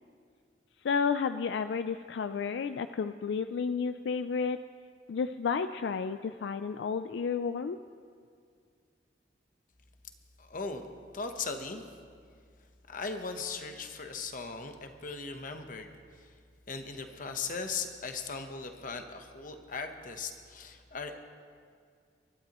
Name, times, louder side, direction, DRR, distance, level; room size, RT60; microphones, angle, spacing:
voice 1, 0.8-4.6 5.1-7.8, left 5 dB, 80° left, 10 dB, 0.4 m, -31 dB
voice 2, 10.4-10.9 11.1-11.9 12.9-16.3 16.7-21.2, left 4 dB, 50° left, 6 dB, 1.0 m, -38 dB
25.0 x 11.5 x 3.0 m, 2.2 s
head